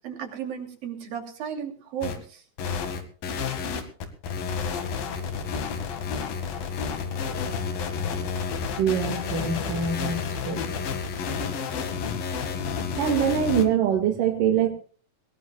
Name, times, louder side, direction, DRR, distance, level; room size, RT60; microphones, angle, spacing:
voice 1, 0.0-2.4, right 8 dB, 85° right, 4 dB, 4.8 m, -34 dB
sound 1, 2.0-2.2 2.6-13.7, left 6 dB, 90° left, 3.8 m, -30 dB
voice 2, 8.8-10.7 13.0-14.7, right 7 dB, 70° right, 3 dB, 3.5 m, -24 dB
20.5 x 20.0 x 2.4 m, 0.41 s
omnidirectional pair, 4.0 m